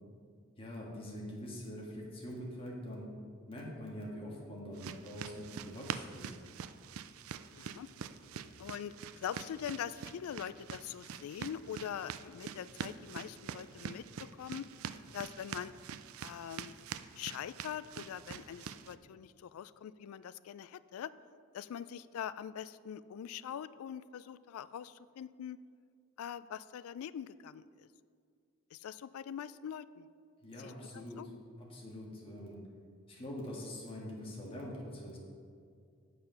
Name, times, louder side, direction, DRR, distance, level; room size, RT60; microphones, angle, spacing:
voice 1, 0.6-3.1 3.5-6.3 30.4-31.3 31.6-32.6 33.1-35.2, equal, 25° left, -3 dB, 1.6 m, -44 dB
sound 1, 4.7-18.9, right 7 dB, 80° right, 0.4 m, -45 dB
voice 2, 7.6-7.9 8.6-14.7 15.1-15.7 16.2-16.7 17.1-21.1 21.5-25.6 26.2-27.7 28.7-30.1 30.6-31.3, left 9 dB, 85° left, 17 dB, 0.3 m, -43 dB
7.8 x 6.6 x 5.6 m, 2.2 s
head